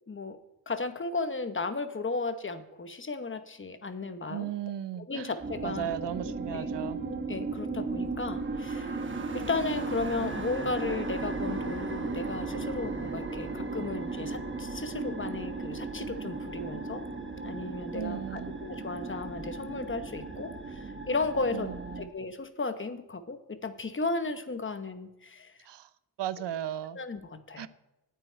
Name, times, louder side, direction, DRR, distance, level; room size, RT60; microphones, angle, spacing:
voice 1, 0.7-4.5 5.0-5.9 6.2-6.7 7.3-9.0 9.3-17.0 17.4-21.7 22.0-25.5 26.9-27.7, left 3 dB, 30° left, 10 dB, 0.9 m, -35 dB
voice 2, 4.3-5.3 5.6-7.0 17.9-18.6 21.5-22.1 25.7-25.9 26.2-27.0 27.6-27.7, right 10 dB, 75° right, 15 dB, 0.7 m, -36 dB
sound 1, 5.4-22.1, right 3 dB, 25° right, 1.2 m, -36 dB
9.3 x 9.0 x 9.0 m, 0.93 s
wide cardioid pair, 155°, 43 cm